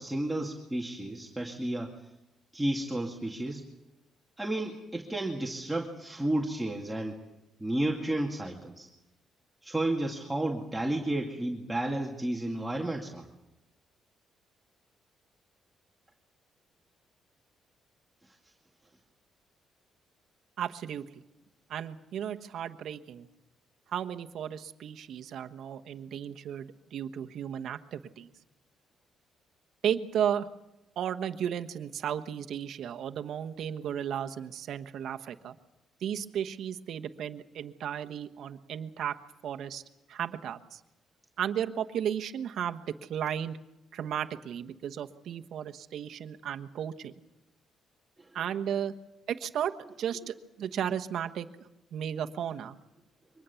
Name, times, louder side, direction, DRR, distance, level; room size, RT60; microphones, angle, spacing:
voice 1, 0.0-2.0 2.5-3.6 4.4-7.2 7.6-8.9 9.6-13.3 48.2-48.3, right 1 dB, 10° right, -1 dB, 2.3 m, -32 dB
voice 2, 20.6-21.1 21.7-23.3 23.9-28.3 29.8-30.5 31.0-35.5 36.0-39.2 39.4-39.8 40.1-40.8 41.4-43.6 43.9-47.1 48.3-48.9 49.3-49.7 50.0-51.5 51.9-52.8, right 9 dB, 70° right, 7 dB, 1.3 m, -34 dB
24.0 x 20.0 x 7.1 m, 0.96 s
cardioid pair, 90°, 0 cm